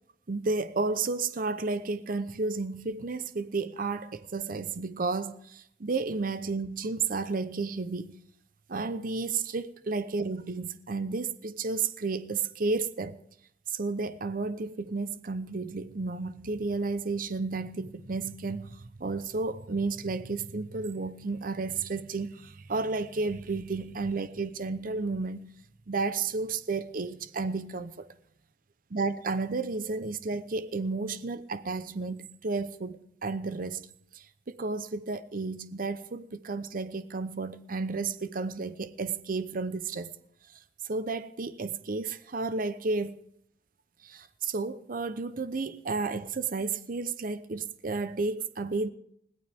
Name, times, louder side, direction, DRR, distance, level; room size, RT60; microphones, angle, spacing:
voice 1, 0.3-8.2 8.7-13.2 13.7-25.5 25.9-28.1 28.9-33.9 34.1-40.1 40.8-43.2 44.0-48.9, right 3 dB, 50° right, 0.7 m, -32 dB
21.0 x 17.0 x 3.5 m
head